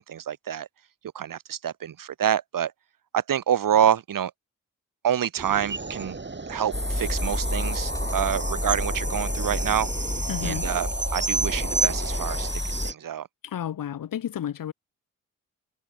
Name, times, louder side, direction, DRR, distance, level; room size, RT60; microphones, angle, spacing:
voice 1, 0.1-0.7 1.1-2.7 3.1-4.3 5.0-6.2 6.5-9.9 10.4-12.5 12.8-13.3, right 9 dB, 70° right, 3.2 m, -27 dB
sound 1, 5.4-12.9, right 3 dB, 30° right, 6.0 m, -32 dB
sound 2, 6.7-12.9, left 1 dB, 10° left, 2.9 m, -29 dB
voice 2, 10.3-10.7 13.4-14.7, left 10 dB, 75° left, 2.3 m, -31 dB
supercardioid pair, 50°, 34 cm